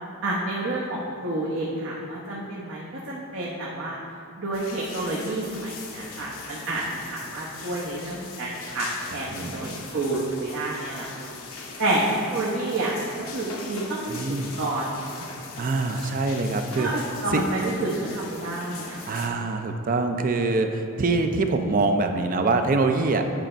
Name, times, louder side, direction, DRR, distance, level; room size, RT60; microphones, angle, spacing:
voice 1, 0.2-4.0 4.4-11.3 11.8-14.2 14.6-15.2 16.8-19.0, right 2 dB, 60° right, -6 dB, 1.0 m, -29 dB
sound 1, 4.5-19.3, left 4 dB, 70° left, 1.0 m, -40 dB
voice 2, 9.1-9.8 14.1-14.6 15.6-16.9 17.3-17.4 19.1-23.2, right 3 dB, 40° right, 6 dB, 0.4 m, -24 dB
9.1 x 5.0 x 4.4 m, 2.6 s
head